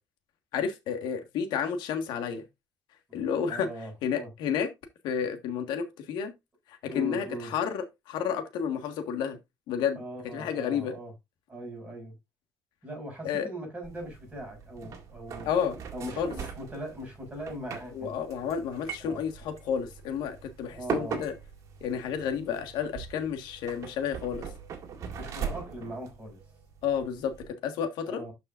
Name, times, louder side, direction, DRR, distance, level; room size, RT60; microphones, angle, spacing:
voice 1, 0.5-2.4 3.1-3.7 4.0-4.7 5.0-6.3 6.7-9.4 9.7-10.9 13.2-13.5 15.4-15.8 16.2-16.3 17.9-21.3 21.8-24.5 26.8-28.2, left 7 dB, 75° left, 1.6 m, -31 dB
voice 2, 3.5-4.3 6.9-7.5 10.0-11.1 11.5-12.1 12.8-15.5 15.9-18.1 19.0-19.2 20.7-21.2 25.2-26.4 28.1-28.3, right 1 dB, 15° right, 5.8 m, -40 dB
sound 1, 13.8-27.5, right 6 dB, 45° right, 2.0 m, -41 dB
12.0 x 5.3 x 2.5 m
cardioid pair, 165°, 8 cm